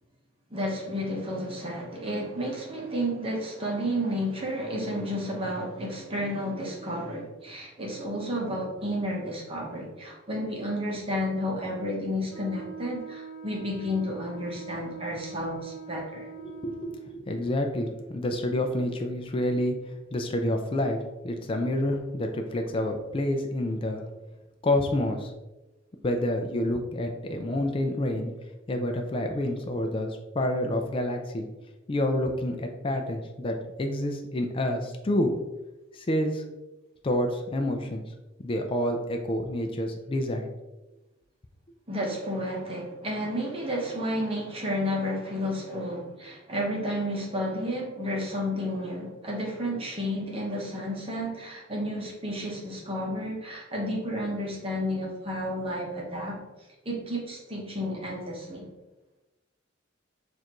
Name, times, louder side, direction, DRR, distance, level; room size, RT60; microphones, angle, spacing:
voice 1, 0.5-16.3 41.9-56.4 56.8-58.7, equal, 30° right, -2 dB, 0.9 m, -31 dB
Wind instrument woodwind instrument, 12.3-17.2, right 5 dB, 5° left, 1.0 m, -43 dB
voice 2, 16.4-24.1 24.6-25.3 26.0-28.3 28.7-31.5 31.9-35.3 35.9-36.4 37.0-38.0 38.4-40.5, left 1 dB, 25° left, 4 dB, 0.4 m, -28 dB
6.3 x 2.5 x 2.9 m, 1.1 s
head